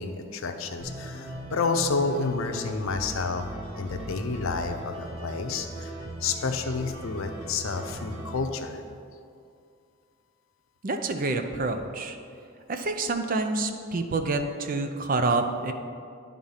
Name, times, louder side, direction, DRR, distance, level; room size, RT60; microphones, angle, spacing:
voice 1, 0.0-3.4 3.8-5.9 6.2-8.8, left 4 dB, 80° left, 6 dB, 0.6 m, -30 dB
sound 1, 0.8-8.4, right 1 dB, 80° right, 1.7 m, -39 dB
voice 2, 10.8-12.2 12.7-15.7, right 3 dB, 40° right, 7 dB, 0.5 m, -27 dB
10.5 x 3.7 x 5.5 m, 2.3 s
head